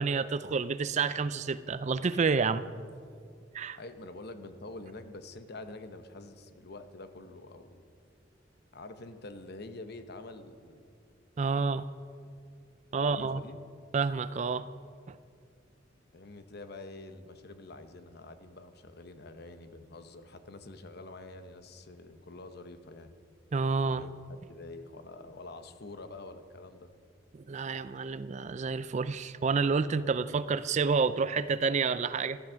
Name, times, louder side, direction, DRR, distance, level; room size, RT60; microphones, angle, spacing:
voice 1, 0.0-2.6 3.5-3.8 11.4-11.8 12.9-13.4 13.9-14.7 23.5-24.0 27.5-32.4, right 4 dB, 35° right, 15 dB, 0.4 m, -29 dB
voice 2, 3.7-7.8 8.7-10.9 13.0-13.6 16.1-23.1 23.8-26.9, left 2 dB, 55° left, 9 dB, 0.9 m, -46 dB
14.0 x 11.5 x 6.3 m, 2.2 s
head